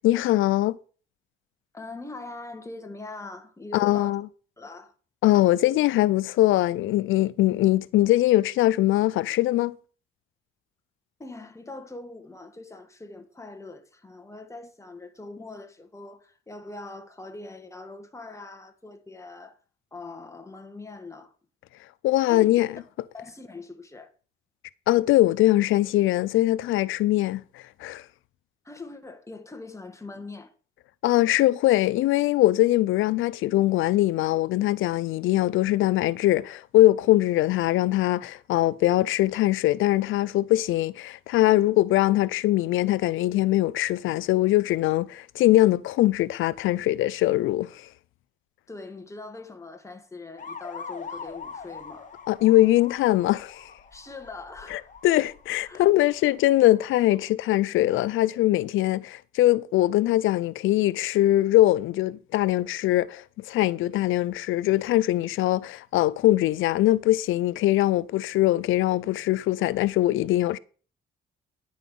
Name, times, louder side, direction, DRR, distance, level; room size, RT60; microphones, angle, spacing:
voice 1, 0.0-0.8 3.7-4.2 5.2-9.7 22.0-22.7 24.9-28.0 31.0-47.9 52.3-53.7 54.7-70.6, left 15 dB, 80° left, 0.5 m, -22 dB
voice 2, 1.7-4.2 4.6-4.9 11.2-19.6 19.9-21.3 22.3-22.6 23.1-24.1 28.6-30.5 48.7-52.1 53.9-54.9 55.6-55.9, left 3 dB, 15° left, 1.7 m, -42 dB
sound 1, 50.4-57.3, left 5 dB, 40° left, 1.6 m, -43 dB
10.0 x 5.5 x 7.8 m
cardioid pair, 90°, 20 cm